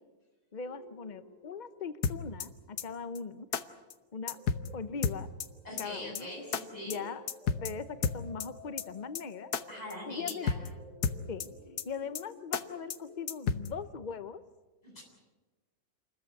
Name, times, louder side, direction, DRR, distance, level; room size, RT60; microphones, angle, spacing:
voice 1, 0.5-3.5 4.1-4.4 4.7-5.3 5.8-6.3 6.8-7.3 7.6-9.5 10.1-10.5 11.3-11.5 11.9-14.4, left 5 dB, 85° left, 12 dB, 0.4 m, -40 dB
sound 1, 0.6-13.5, left 2 dB, 20° right, 7.4 m, -54 dB
sound 2, 2.0-2.5 2.8-2.9 3.2-3.3 3.5-3.6 3.9-4.0 4.3-4.7 5.0-5.5 5.8-5.9 6.2-6.3 6.5-6.6 6.9-7.0 7.3-7.7 8.0-8.5 8.8-8.9 9.2-9.3 9.5-9.6 9.9-10.0 10.3-10.7 11.0-11.5 11.8-11.9 12.2-12.3 12.5-12.6 12.9-13.0 13.3-13.7, left 6 dB, 60° left, 1.4 m, -31 dB
voice 2, 5.6-7.0 9.7-10.6 14.8-15.0, left 1 dB, 20° left, -2 dB, 8.0 m, -42 dB
28.0 x 14.0 x 9.5 m, 1.2 s
omnidirectional pair, 2.1 m